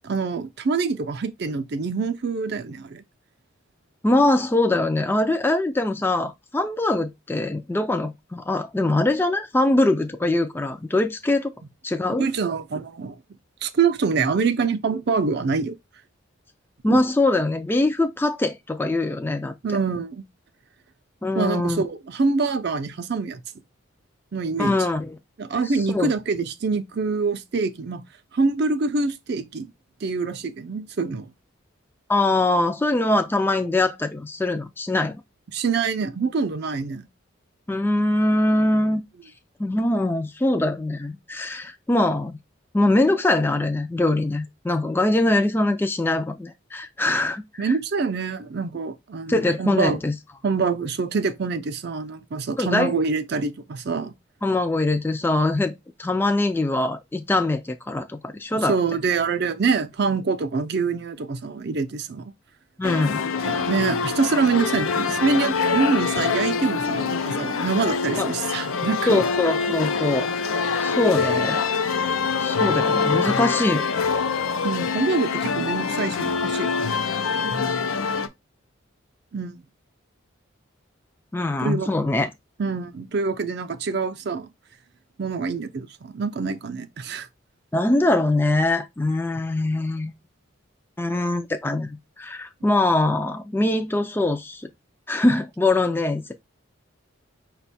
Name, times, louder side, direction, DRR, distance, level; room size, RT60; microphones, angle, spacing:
voice 1, 0.0-3.0 12.2-13.1 13.6-15.8 16.8-17.0 19.6-20.2 21.3-23.4 24.3-24.8 25.4-28.0 28.3-29.7 30.0-31.3 35.5-37.1 47.6-50.0 50.4-54.1 58.5-62.3 63.4-69.2 74.6-77.0 79.3-79.6 81.6-81.9 82.6-84.5 85.2-87.3, right 4 dB, 55° right, 0.4 m, -25 dB
voice 2, 4.0-11.5 11.8-12.3 16.8-19.5 21.2-21.8 24.6-25.2 25.9-26.1 32.1-35.1 37.7-39.0 39.6-42.4 42.7-47.7 49.3-50.1 52.6-52.9 54.4-55.7 56.0-58.7 62.8-63.2 68.1-68.3 69.1-70.5 70.8-71.6 72.4-73.9 81.3-82.3 87.7-90.1 91.0-94.7 95.1-96.3, left 2 dB, 10° left, 0.3 m, -22 dB
sound 1, 62.8-78.3, left 5 dB, 90° left, 0.5 m, -25 dB
5.2 x 2.3 x 4.1 m
head